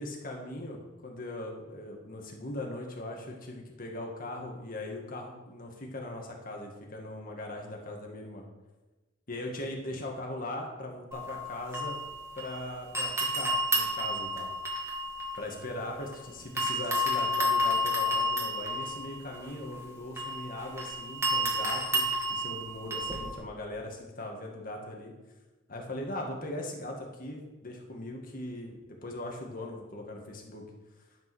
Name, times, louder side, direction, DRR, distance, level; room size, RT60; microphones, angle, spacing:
voice 1, 0.0-8.4 9.3-12.0 12.4-14.5 15.4-25.1 25.7-30.6, left 1 dB, 50° left, 1 dB, 1.9 m, -39 dB
sound 1, 11.1-12.6 12.9-16.2 16.6-23.4, left 1 dB, 15° right, 2.0 m, -31 dB
11.0 x 5.3 x 6.3 m, 1.1 s
head